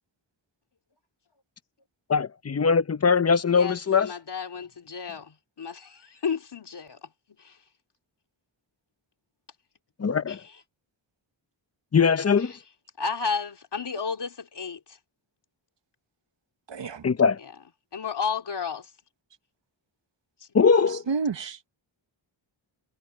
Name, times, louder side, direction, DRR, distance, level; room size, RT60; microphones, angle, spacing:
voice 1, 2.1-4.1 10.0-10.4 11.9-12.5 17.0-17.4 20.5-21.0, left 5 dB, 30° left, 0.8 m, -21 dB
voice 2, 3.5-7.1 7.4-7.6 10.3-10.5 12.4-12.6 13.0-15.0 17.4-17.5 17.9-18.9, left 5 dB, 60° left, 2.9 m, -33 dB
voice 3, 16.7-17.1 20.9-21.7, right 5 dB, 65° right, 1.3 m, -30 dB
wide cardioid pair, 130°, 46 cm